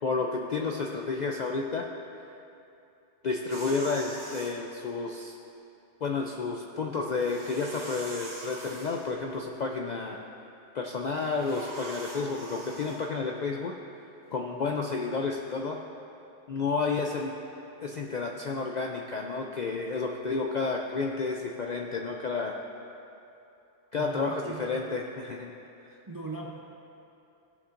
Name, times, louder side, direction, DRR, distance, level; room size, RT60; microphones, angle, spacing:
voice 1, 0.0-1.9 3.2-5.3 6.0-10.2 10.7-13.7 14.3-15.8 16.5-17.3 17.8-22.6 23.9-25.5 25.8-26.0, left 4 dB, 55° left, 1 dB, 0.5 m, -31 dB
sound 1, 3.5-4.6 7.0-9.2 11.0-13.1, right 1 dB, 90° right, 1.8 m, -43 dB
voice 2, 24.0-25.0 26.1-26.6, right 3 dB, 25° right, -1 dB, 0.5 m, -40 dB
15.5 x 7.2 x 2.5 m, 2.8 s
omnidirectional pair, 1.2 m